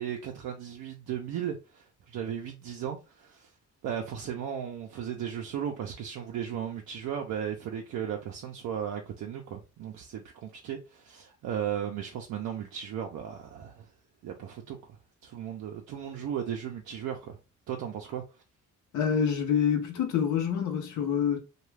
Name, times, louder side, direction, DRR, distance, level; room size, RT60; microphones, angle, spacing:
voice 1, 0.0-3.5 3.8-13.9 14.2-14.8 15.2-17.4 17.7-18.2, right 9 dB, 75° right, 0.6 m, -36 dB
voice 2, 18.9-21.4, left 8 dB, 80° left, 0.8 m, -26 dB
2.3 x 2.3 x 3.2 m
cardioid pair, 90°, 30 cm